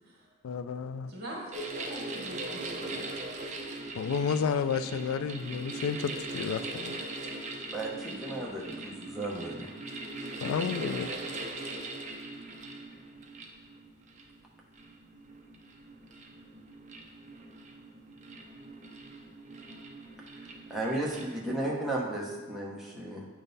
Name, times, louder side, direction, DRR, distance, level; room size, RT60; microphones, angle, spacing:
voice 1, 0.4-1.1 4.0-7.0 10.4-11.1, left 6 dB, 75° left, 12 dB, 0.3 m, -31 dB
voice 2, 1.1-3.0 8.0-8.6, equal, 50° right, -2 dB, 1.7 m, -43 dB
sound 1, 1.5-21.4, right 2 dB, 35° right, 0.5 m, -41 dB
voice 3, 7.7-9.7 20.7-23.2, right 1 dB, ahead, -5 dB, 0.8 m, -34 dB
8.9 x 3.7 x 4.0 m, 1.3 s
head